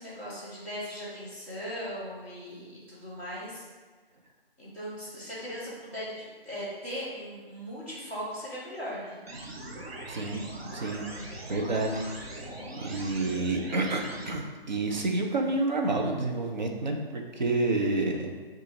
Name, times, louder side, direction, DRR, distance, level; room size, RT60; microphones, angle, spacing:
voice 1, 0.0-3.6 4.6-9.2, equal, 10° right, -13 dB, 0.7 m, -38 dB
sound 1, 9.3-14.3, right 1 dB, 85° right, 0.8 m, -41 dB
voice 2, 10.1-10.4 10.7-11.0 11.5-12.5 12.8-18.3, right 2 dB, 50° right, 2 dB, 0.5 m, -29 dB
5.0 x 2.4 x 2.8 m, 1.4 s
hypercardioid pair, 170°, 30 cm